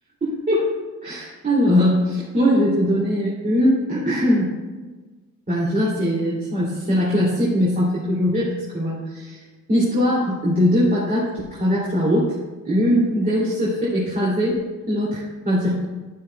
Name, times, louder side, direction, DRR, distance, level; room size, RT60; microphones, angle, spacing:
voice 1, 0.2-0.7 1.0-4.5 5.5-9.4 9.7-12.3 12.6-15.8, equal, 30° right, -7 dB, 2.6 m, -21 dB
10.0 x 10.0 x 2.2 m, 1.3 s
cardioid pair, 90°, 30 cm